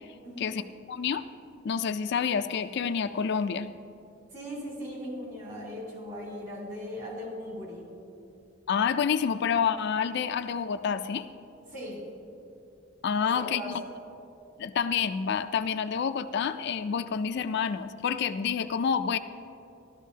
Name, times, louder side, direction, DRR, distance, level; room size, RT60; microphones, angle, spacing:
voice 1, 0.2-0.6 4.3-7.9 11.7-12.0 13.2-13.8, equal, 40° right, -2 dB, 3.1 m, -38 dB
voice 2, 0.9-1.2 1.6-3.7 8.7-11.3 13.0-13.8 14.6-19.2, left 7 dB, 55° left, 9 dB, 0.3 m, -28 dB
16.5 x 12.5 x 2.8 m, 2.7 s
head